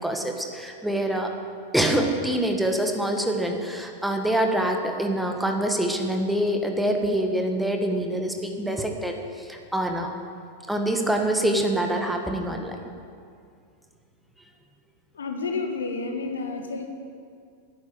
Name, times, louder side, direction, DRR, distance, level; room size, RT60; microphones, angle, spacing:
voice 1, 0.0-1.3 1.7-10.1 10.7-12.8, right 1 dB, 5° right, 3 dB, 1.6 m, -25 dB
voice 2, 15.1-16.9, left 4 dB, 70° left, 4 dB, 1.5 m, -30 dB
11.5 x 9.7 x 8.8 m, 2.3 s
figure-of-eight pair, 90°, 0 cm